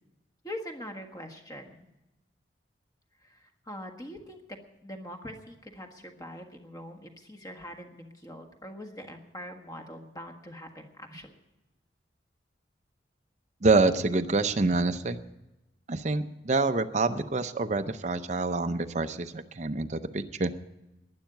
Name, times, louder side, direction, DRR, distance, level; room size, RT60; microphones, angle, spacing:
voice 1, 0.4-1.9 3.2-4.4 4.8-11.3, equal, 20° left, 5 dB, 1.5 m, -43 dB
voice 2, 13.6-15.2 15.9-20.5, right 3 dB, 40° right, 8 dB, 0.6 m, -26 dB
12.0 x 10.5 x 9.1 m, 0.96 s
head